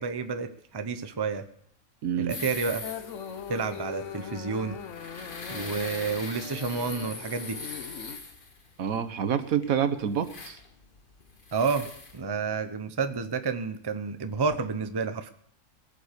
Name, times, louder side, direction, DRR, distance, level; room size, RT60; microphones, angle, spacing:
voice 1, 0.0-1.5 2.2-2.8 3.5-4.8 5.5-7.6 11.5-11.9 12.1-15.3, right 5 dB, 20° right, 9 dB, 0.7 m, -30 dB
voice 2, 2.0-2.3 8.8-10.6, right 8 dB, 70° right, 11 dB, 1.4 m, -27 dB
sound 1, 2.3-12.2, left 3 dB, 35° left, 1.6 m, -42 dB
sound 2, 2.8-8.2, left 8 dB, 60° left, 1.2 m, -40 dB
20.5 x 7.3 x 6.7 m, 0.68 s
omnidirectional pair, 1.5 m